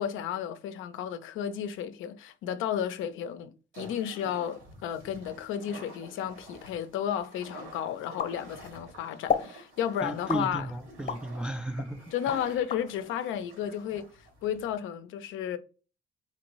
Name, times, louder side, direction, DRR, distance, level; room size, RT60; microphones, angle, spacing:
voice 1, 0.0-10.7 12.1-14.1 14.4-15.6, left 9 dB, 85° left, 0.5 m, -33 dB
sound 1, 3.7-14.7, right 2 dB, 75° right, 2.0 m, -50 dB
sound 2, 8.2-8.9 9.3-9.6 10.3-11.3 11.8-12.8, left 7 dB, 45° left, 0.8 m, -31 dB
voice 2, 10.0-12.6, right 1 dB, 5° right, 0.3 m, -35 dB
4.3 x 2.6 x 3.0 m
cardioid pair, 90°, 20 cm